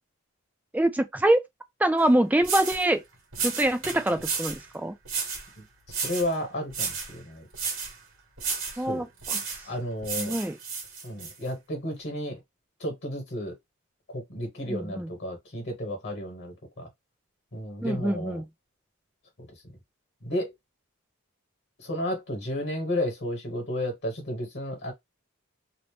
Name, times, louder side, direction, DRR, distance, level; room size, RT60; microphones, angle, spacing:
voice 1, 0.7-1.4 1.8-3.0 3.4-4.9 8.8-9.6 10.2-10.6 14.7-15.1 17.8-18.4, right 1 dB, 5° right, 0.3 m, -25 dB
sound 1, 2.0-2.1 2.4-2.9 3.3-4.6 5.1-5.5 5.9-6.3 6.7-7.1 7.5-7.9 8.4-8.8 9.2-9.6 10.0-11.3, right 5 dB, 60° right, 1.2 m, -32 dB
voice 2, 5.6-7.5 8.9-9.1 9.6-10.4 11.0-12.4 12.8-13.6 14.1-16.9 17.5-18.4 20.2-20.5 21.8-24.9, left 1 dB, 55° left, 1.2 m, -32 dB
2.7 x 2.0 x 3.2 m
head